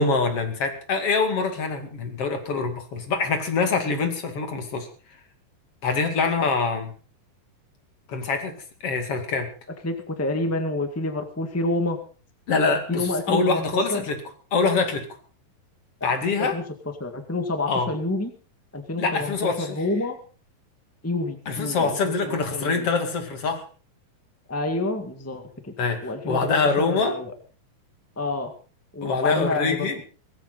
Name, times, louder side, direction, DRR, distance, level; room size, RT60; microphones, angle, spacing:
voice 1, 0.0-4.9 5.8-6.9 8.1-8.5 8.8-9.5 12.5-14.2 14.5-15.1 16.0-16.6 17.7-17.9 19.0-19.8 21.5-23.6 25.8-27.2 29.0-30.0, left 4 dB, 45° left, 6 dB, 3.0 m, -24 dB
voice 2, 9.8-12.0 12.9-14.1 16.4-16.6 17.0-18.3 18.7-20.2 21.0-22.9 24.5-25.7 26.0-27.3 28.1-28.5 28.9-30.0, left 2 dB, 25° left, 6 dB, 0.3 m, -28 dB
18.0 x 16.0 x 4.1 m, 0.38 s
omnidirectional pair, 4.3 m